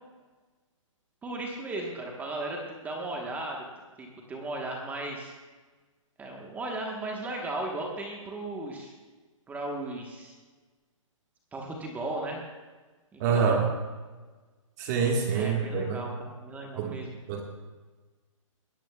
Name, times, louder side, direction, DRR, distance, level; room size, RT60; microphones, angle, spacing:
voice 1, 1.2-3.6 4.0-5.3 6.2-8.9 9.5-10.3 11.5-12.4 13.1-13.7 15.3-17.2, right 2 dB, 10° right, 0 dB, 1.3 m, -36 dB
voice 2, 13.2-13.7 14.8-16.0 16.8-17.0 17.3-17.4, right 6 dB, 30° right, 2 dB, 1.7 m, -26 dB
20.0 x 13.5 x 2.4 m, 1.3 s
hypercardioid pair, 155°, 17 cm